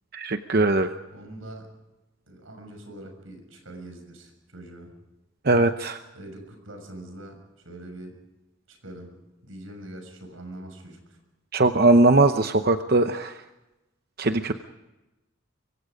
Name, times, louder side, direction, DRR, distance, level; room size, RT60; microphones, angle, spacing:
voice 1, 0.1-0.9 5.4-6.0 11.5-13.4 14.2-14.5, right 2 dB, 50° right, 8 dB, 0.8 m, -20 dB
voice 2, 1.1-1.7 2.3-4.9 6.1-8.2 8.7-11.2, right 1 dB, 90° right, 5 dB, 6.6 m, -43 dB
25.0 x 23.5 x 5.2 m, 1.0 s
head